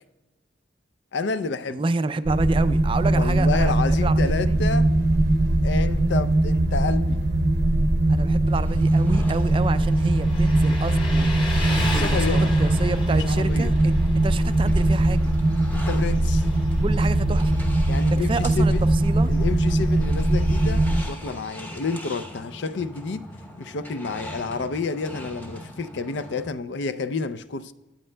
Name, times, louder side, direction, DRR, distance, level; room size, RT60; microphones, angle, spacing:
voice 1, 1.1-1.8 3.1-4.9 5.6-7.2 11.8-12.5 13.1-13.7 15.7-16.5 17.9-18.9 19.3-23.3 23.6-27.7, left 4 dB, 65° left, 0.5 m, -30 dB
voice 2, 1.7-4.6 8.1-11.3 11.9-15.2 16.8-17.6 18.1-18.7 19.0-19.3, right 3 dB, 25° right, 0.3 m, -29 dB
sound 1, 2.2-21.0, right 1 dB, 60° right, 0.7 m, -21 dB
sound 2, 8.5-26.5, equal, 10° left, 0.8 m, -41 dB
Motorcycle, 9.1-21.7, left 1 dB, 25° left, 1.3 m, -36 dB
20.5 x 8.7 x 2.2 m
head